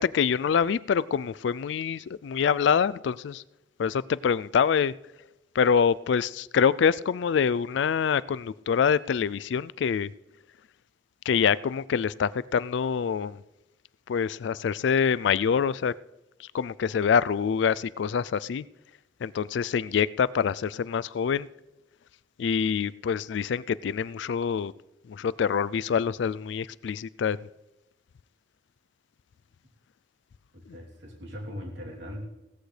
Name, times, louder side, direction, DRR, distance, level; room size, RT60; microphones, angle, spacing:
voice 1, 0.0-3.4 3.8-4.9 5.6-10.1 11.3-13.4 14.1-15.9 16.4-18.6 19.2-21.5 22.4-24.7 25.1-27.4, left 7 dB, 70° left, 0.3 m, -25 dB
voice 2, 30.5-32.3, equal, 65° right, 3.2 m, -39 dB
17.0 x 14.0 x 3.3 m
head